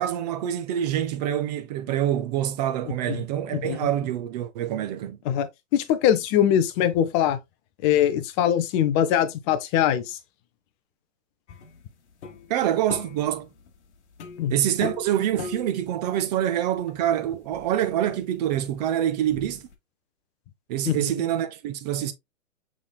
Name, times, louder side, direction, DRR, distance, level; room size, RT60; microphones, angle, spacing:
voice 1, 0.0-5.2 12.5-13.5 14.5-19.6 20.7-22.1, right 11 dB, 35° right, 0.5 m, -26 dB
voice 2, 3.5-3.9 5.2-5.5 5.7-7.4 7.8-10.2 14.4-14.5 20.8-21.1, left 10 dB, 25° left, 0.4 m, -22 dB
sound 1, 11.5-19.7, left 5 dB, 65° left, 1.1 m, -42 dB
5.9 x 3.4 x 2.2 m
hypercardioid pair, 120°, 37 cm